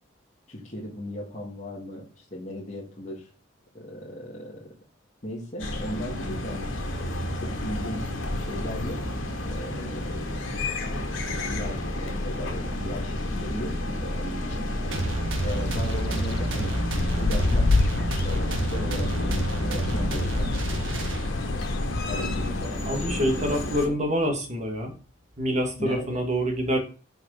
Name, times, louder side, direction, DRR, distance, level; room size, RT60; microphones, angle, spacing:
voice 1, 0.5-3.3 3.7-4.7 5.2-6.7 7.4-8.0 8.3-9.1 9.4-10.2 11.0-11.1 11.5-14.7 15.4-16.7 17.2-17.7 18.2-21.1 22.1-24.1 25.8-26.2, equal, 35° left, -6 dB, 2.0 m, -37 dB
sound 1, 5.6-23.9, left 1 dB, 75° left, 2.0 m, -31 dB
sound 2, 14.9-21.6, right 2 dB, 75° right, 1.4 m, -30 dB
sound 3, 15.4-22.7, left 3 dB, 50° left, 0.5 m, -29 dB
voice 2, 22.8-24.9 25.4-26.8, equal, 35° right, 3 dB, 2.1 m, -26 dB
6.0 x 5.1 x 5.6 m, 0.36 s
head